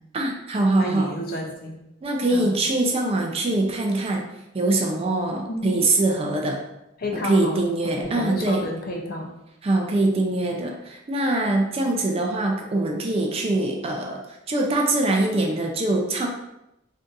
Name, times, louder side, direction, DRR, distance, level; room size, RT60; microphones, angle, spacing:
voice 1, 0.1-1.1 2.0-4.2 4.5-6.6 7.1-8.7 9.6-14.2 14.5-16.3, right 2 dB, 30° right, 1 dB, 0.4 m, -23 dB
voice 2, 0.8-1.8 2.3-2.5 5.5-5.8 7.0-9.3, left 1 dB, 45° left, 0 dB, 0.5 m, -31 dB
2.6 x 2.4 x 3.8 m, 0.88 s
head